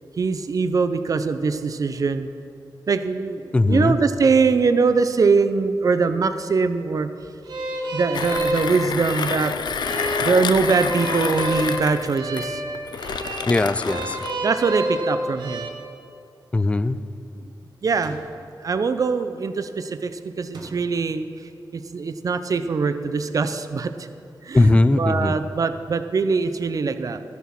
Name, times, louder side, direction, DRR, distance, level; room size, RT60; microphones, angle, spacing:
voice 1, 0.2-2.3 2.9-7.1 7.9-9.5 10.2-12.6 14.4-15.7 17.4-17.5 17.8-18.2 18.6-21.3 21.7-24.1 24.4-27.2, right 4 dB, 50° right, 10 dB, 0.6 m, -22 dB
voice 2, 3.5-4.0 13.5-14.2 16.5-17.0 24.5-25.4, left 2 dB, 15° left, 15 dB, 0.3 m, -19 dB
sound 1, 7.5-15.7, right 1 dB, 90° right, 1.2 m, -29 dB
Mechanisms, 8.1-14.4, left 6 dB, 75° left, 0.5 m, -28 dB
sound 2, 18.0-18.5 20.5-21.2, right 2 dB, 70° right, 1.6 m, -42 dB
13.0 x 7.1 x 6.0 m, 2.6 s
wide cardioid pair, 125°, 8 cm